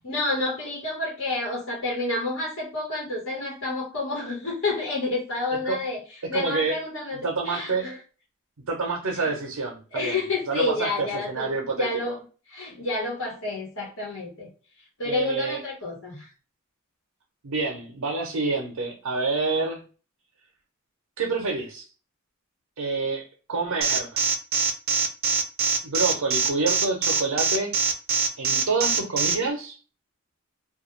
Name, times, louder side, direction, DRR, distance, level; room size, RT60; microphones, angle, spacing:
voice 1, 0.0-6.0 6.3-7.2 7.5-8.0 9.2-9.3 9.9-11.5 11.8-12.2 12.5-14.5 15.0-16.3, left 2 dB, 65° left, -3 dB, 1.1 m, -29 dB
voice 2, 6.3-6.8 7.1-7.9 8.7-10.2 10.5-12.2 15.0-15.6 17.4-19.8 21.2-21.8 22.8-24.2 25.8-27.7 28.4-29.8, right 3 dB, 85° right, 1 dB, 0.6 m, -28 dB
Alarm, 23.8-29.3, right 5 dB, 45° right, 0.4 m, -23 dB
2.3 x 2.2 x 3.0 m, 0.36 s
head